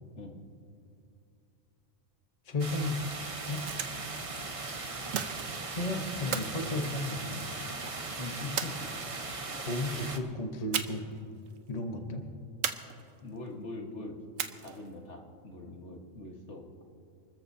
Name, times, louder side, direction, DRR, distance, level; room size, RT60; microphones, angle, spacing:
voice 1, 2.4-3.7 5.7-7.5 9.6-11.2 11.7-12.3, left 2 dB, 30° left, 4 dB, 1.1 m, -34 dB
sound 1, 2.6-10.2, right 3 dB, 30° right, 0.9 m, -38 dB
sound 2, 3.4-4.2 5.1-5.8 6.3-7.6 8.6-9.3 10.7-11.2 11.5-11.6 12.6-13.4 14.4-14.9, right 8 dB, 85° right, 1.2 m, -36 dB
voice 2, 8.2-8.7 13.2-14.2 14.6-16.7, left 2 dB, 60° left, 1 dB, 1.8 m, -42 dB
29.5 x 13.5 x 2.8 m, 2.5 s
omnidirectional pair, 1.4 m